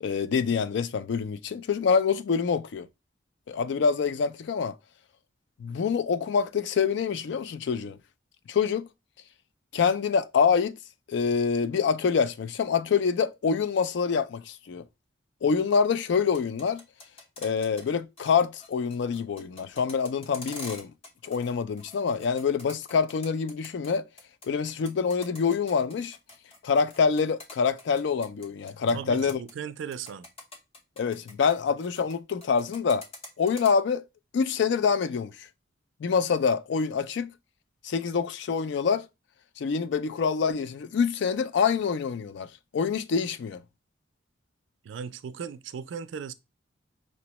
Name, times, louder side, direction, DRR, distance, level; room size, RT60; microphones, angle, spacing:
voice 1, 0.0-2.9 3.5-4.8 5.6-8.0 8.5-8.9 9.7-10.7 11.1-14.8 15.4-16.8 17.4-20.9 21.2-24.1 24.5-26.2 26.6-29.4 31.0-33.1 33.4-34.0 34.3-35.5 36.0-37.3 37.8-39.1 39.6-43.6, left 6 dB, 65° left, 0.3 m, -26 dB
sound 1, 16.3-17.9 18.2-18.3 18.6-21.5 21.8-23.9 24.2-28.9 29.2-29.5 29.9-32.2 32.4-33.7, left 2 dB, 30° left, 0.8 m, -45 dB
voice 2, 28.9-30.3 44.8-46.3, right 7 dB, 70° right, 0.3 m, -37 dB
5.2 x 2.1 x 2.8 m
head